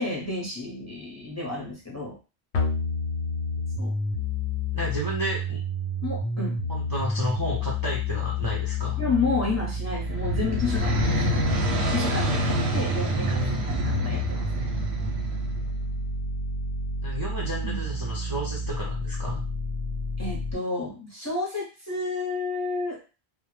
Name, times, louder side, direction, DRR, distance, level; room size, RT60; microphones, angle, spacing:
voice 1, 0.0-2.1 3.8-3.9 6.0-6.6 9.0-11.2 11.7-13.4 13.7-14.7 17.6-17.8 20.2-23.0, left 3 dB, 20° left, -3 dB, 0.6 m, -31 dB
sound 1, 2.5-20.5, left 2 dB, 85° left, 0.9 m, -30 dB
voice 2, 4.7-5.6 6.7-9.0 13.0-13.6 17.0-19.4, right 1 dB, 30° right, -5 dB, 0.4 m, -32 dB
sound 2, 9.7-15.8, right 1 dB, 90° right, 0.8 m, -28 dB
2.1 x 2.0 x 3.1 m, 0.32 s
omnidirectional pair, 1.1 m